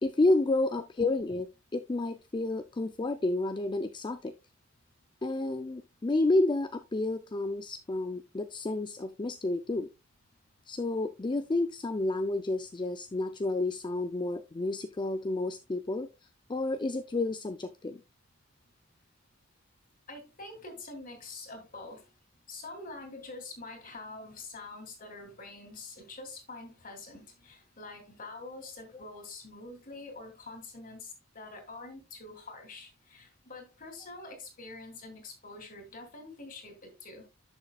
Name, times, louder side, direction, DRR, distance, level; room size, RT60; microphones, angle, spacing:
voice 1, 0.0-4.3 5.2-9.9 10.7-16.1 16.5-18.0 28.9-29.0, left 2 dB, 25° left, 0.4 m, -30 dB
voice 2, 20.1-22.0 22.5-37.2, left 3 dB, 45° left, 2.8 m, -45 dB
10.5 x 6.6 x 2.3 m
head